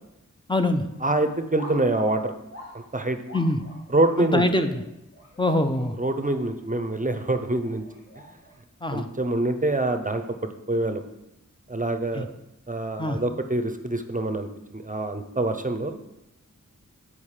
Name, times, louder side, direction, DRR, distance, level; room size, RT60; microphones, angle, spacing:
voice 1, 0.5-0.9 3.3-3.6 4.2-4.8 5.4-6.0 8.8-9.1 12.1-12.3 13.0-13.2, left 1 dB, 15° left, 6 dB, 0.6 m, -24 dB
sound 1, 0.9-1.2 1.5-6.6 7.1-8.5, equal, 45° left, 2.0 m, -46 dB
voice 2, 1.0-2.3 2.9-3.2 3.9-4.4 6.0-7.8 8.9-10.2 10.7-11.0 11.7-12.3 12.7-16.0, right 2 dB, 25° right, 7 dB, 0.6 m, -25 dB
7.2 x 4.9 x 4.9 m, 0.88 s
wide cardioid pair, 40°, 31 cm